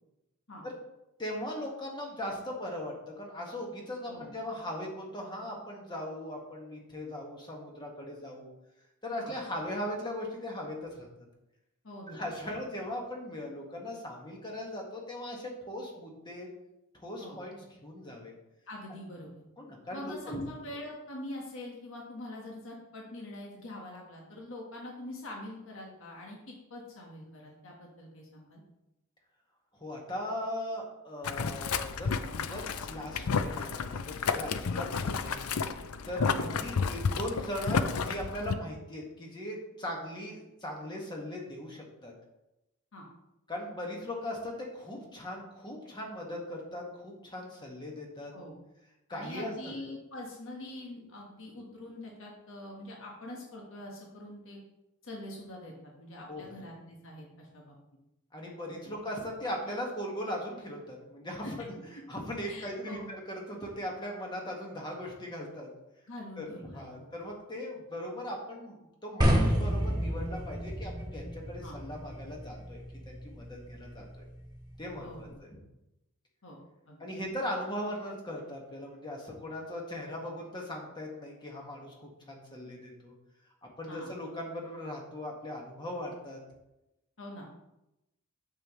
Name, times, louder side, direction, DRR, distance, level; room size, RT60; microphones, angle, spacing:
voice 1, 1.2-8.5 9.0-11.1 12.1-16.5 17.0-18.3 19.6-20.4 29.8-35.4 36.1-42.1 43.5-48.3 49.1-49.7 56.3-56.6 58.3-61.8 62.1-65.7 66.4-68.8 69.0-72.8 73.1-74.0 74.8-75.3 77.0-83.1 83.8-86.4, left 1 dB, 20° left, -1 dB, 1.7 m, -39 dB
voice 2, 11.8-12.5 17.2-17.4 18.7-19.4 19.9-28.6 36.2-36.3 42.9-43.0 48.3-48.6 49.1-54.6 55.0-57.7 58.8-58.9 61.4-61.5 62.4-63.1 63.4-63.5 66.1-67.1 71.6-71.8 75.0-75.3 76.4-76.6 76.9-77.0 83.9-84.1 87.2-87.5, left 1 dB, 60° left, -1 dB, 1.5 m, -44 dB
Boiling, 31.2-38.6, left 5 dB, 85° left, 0.5 m, -31 dB
sound 1, 69.2-75.3, equal, 20° right, 1.9 m, -32 dB
9.0 x 7.3 x 3.2 m, 0.92 s
head